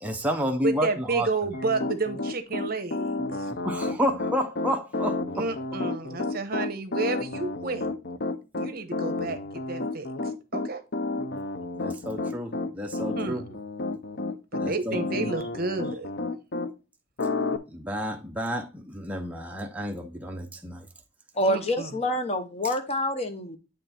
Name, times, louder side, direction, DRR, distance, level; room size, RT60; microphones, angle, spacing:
voice 1, 0.0-1.3 3.5-5.5 11.7-13.5 14.6-15.3 17.7-20.9, equal, 10° right, 0.7 m, -30 dB
voice 2, 0.6-3.1 3.4-3.5 5.3-7.9 8.6-10.1 10.5-10.8 13.1-13.5 14.5-16.1 21.4-21.9, right 3 dB, 50° right, 1.0 m, -31 dB
Piano, 1.5-16.7 17.2-17.6, left 2 dB, 60° left, 0.6 m, -31 dB
voice 3, 21.3-23.6, left 1 dB, 35° left, 1.0 m, -27 dB
9.1 x 3.3 x 4.2 m
head